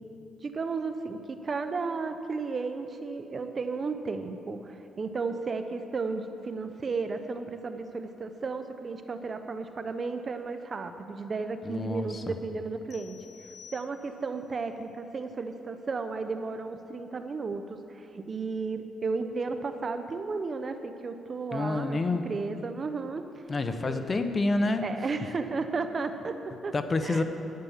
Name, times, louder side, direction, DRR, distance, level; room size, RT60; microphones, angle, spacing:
voice 1, 0.4-13.2 13.7-23.2 23.7-24.1 24.8-26.7 27.0-27.2, right 4 dB, 40° right, 8 dB, 0.8 m, -34 dB
voice 2, 11.7-12.3 21.5-22.3 23.5-24.8 26.7-27.2, left 2 dB, 30° left, 8 dB, 0.9 m, -28 dB
sound 1, 12.9-14.5, left 8 dB, 60° left, 0.8 m, -52 dB
10.5 x 9.7 x 7.2 m, 2.8 s
cardioid pair, 90°, 0 cm